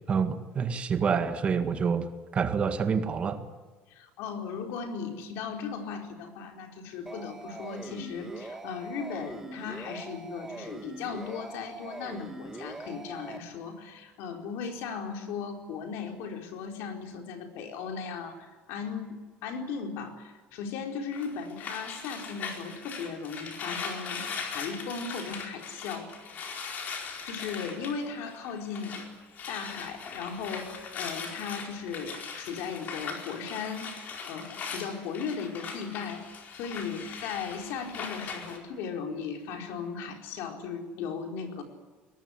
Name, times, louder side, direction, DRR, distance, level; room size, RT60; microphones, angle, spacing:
voice 1, 0.1-2.1 2.3-3.4, right 6 dB, 30° right, 8 dB, 1.8 m, -27 dB
voice 2, 3.9-26.1 27.2-29.1 29.5-41.6, left 6 dB, 70° left, 4 dB, 4.4 m, -37 dB
sound 1, 7.1-13.4, right 2 dB, 10° right, 1.9 m, -42 dB
sound 2, 21.1-29.1 29.3-38.6, left 5 dB, 40° left, 4.4 m, -40 dB
22.5 x 19.0 x 9.8 m, 1.4 s
cardioid pair, 155°, 4 cm